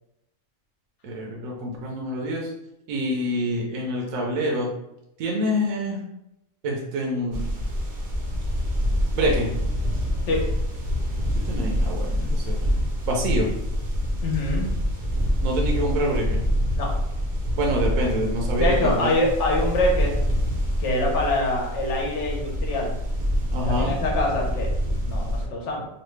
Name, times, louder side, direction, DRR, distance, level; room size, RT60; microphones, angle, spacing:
voice 1, 1.0-2.5 2.9-4.7 5.2-6.0 6.6-7.5 9.2-9.5 11.3-12.7 13.1-13.5 15.4-16.4 17.5-19.2 23.5-24.0, equal, 75° right, -1 dB, 1.0 m, -26 dB
sound 1, 7.3-25.5, equal, 55° right, 0.7 m, -26 dB
voice 2, 14.2-14.7 16.7-16.9 18.6-20.2 20.8-23.0 23.6-24.7 25.0-25.9, left 1 dB, 60° left, -2 dB, 1.1 m, -25 dB
3.1 x 2.3 x 3.1 m, 0.85 s
omnidirectional pair, 1.5 m